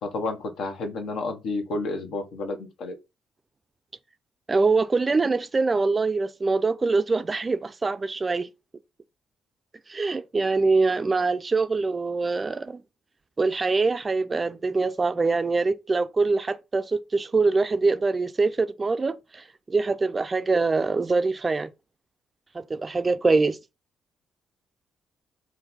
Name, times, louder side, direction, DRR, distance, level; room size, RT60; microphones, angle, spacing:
voice 1, 0.0-2.9, left 3 dB, 65° left, 0.9 m, -31 dB
voice 2, 4.5-8.5 9.9-12.8 13.4-21.7 22.5-23.6, right 3 dB, 35° right, 0.5 m, -24 dB
3.9 x 2.3 x 4.0 m
hypercardioid pair, 45°, 0 cm